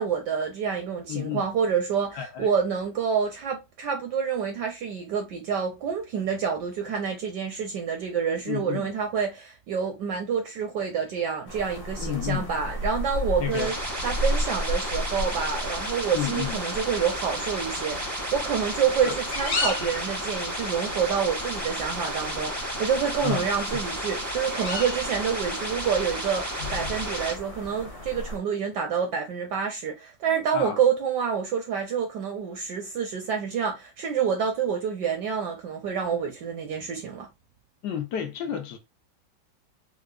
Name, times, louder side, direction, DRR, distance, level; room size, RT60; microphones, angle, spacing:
voice 1, 0.0-13.8 14.0-37.3, right 7 dB, 75° right, 1.0 m, -28 dB
voice 2, 1.1-1.5 2.1-2.5 8.5-8.9 12.0-12.5 13.4-13.7 16.1-16.6 19.0-19.2 23.2-23.5 23.7-23.8 30.5-30.8 37.8-38.8, left 9 dB, 70° left, 1.0 m, -30 dB
sound 1, 11.5-28.4, left 1 dB, 50° left, 0.7 m, -34 dB
sound 2, 13.5-27.3, right 1 dB, 25° right, 0.4 m, -33 dB
4.6 x 2.0 x 2.3 m
omnidirectional pair, 2.2 m